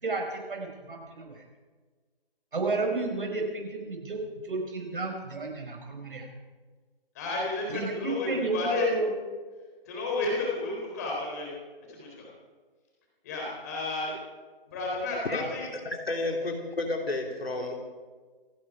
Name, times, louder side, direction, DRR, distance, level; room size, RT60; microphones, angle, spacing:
voice 1, 0.0-1.4 2.5-4.2 4.4-6.3 7.7-9.1, right 3 dB, 60° right, 2 dB, 5.0 m, -32 dB
voice 2, 7.1-8.9 9.9-11.5 11.9-12.3 13.2-14.2 14.7-15.6, left 3 dB, 15° left, -2 dB, 3.9 m, -32 dB
voice 3, 15.7-17.7, left 2 dB, 85° left, 2 dB, 3.2 m, -31 dB
27.0 x 11.0 x 4.8 m, 1.4 s
hypercardioid pair, 170°, 29 cm